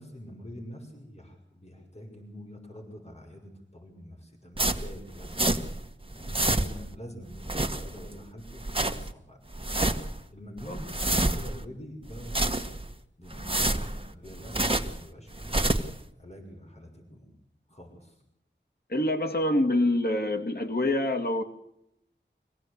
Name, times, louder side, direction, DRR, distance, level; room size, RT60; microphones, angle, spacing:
voice 1, 0.0-5.6 6.1-9.4 10.0-12.7 13.2-15.7 16.1-17.3 17.7-18.2, equal, 35° left, 2 dB, 6.3 m, -46 dB
sound 1, 4.6-5.9 6.1-6.9 7.3-8.1 8.5-9.1 9.5-10.2 10.6-11.6 12.1-12.9 13.3-15.0 15.3-16.0, right 1 dB, 30° right, 1.9 m, -28 dB
voice 2, 18.9-21.4, left 1 dB, 55° left, 3 dB, 2.3 m, -26 dB
25.5 x 17.0 x 8.4 m, 0.77 s
wide cardioid pair, 45°, 19 cm